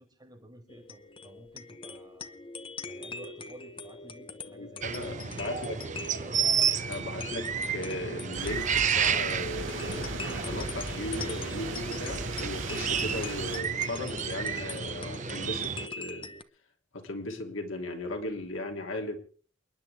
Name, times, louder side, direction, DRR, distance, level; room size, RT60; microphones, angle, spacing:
voice 1, 0.0-2.4 2.8-6.5, right 1 dB, 20° right, 0 dB, 5.1 m, -52 dB
sound 1, 0.7-16.4, left 3 dB, 25° left, 1.0 m, -42 dB
voice 2, 4.5-5.8 6.8-16.3 16.9-19.2, left 1 dB, 85° left, 3 dB, 3.0 m, -37 dB
sound 2, 4.8-15.9, right 7 dB, 40° right, 0.7 m, -32 dB
sound 3, 8.3-13.6, right 3 dB, 75° right, 2.7 m, -38 dB
29.0 x 10.5 x 3.6 m, 0.42 s
head